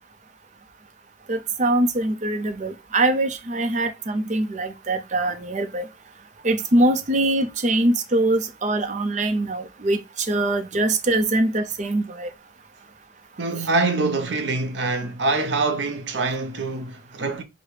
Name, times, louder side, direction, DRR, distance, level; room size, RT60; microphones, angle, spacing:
voice 1, 1.3-5.9 6.4-12.3, right 1 dB, 40° right, 0.6 m, -23 dB
voice 2, 13.4-17.4, right 3 dB, 80° right, 0.8 m, -25 dB
4.9 x 2.1 x 4.8 m
head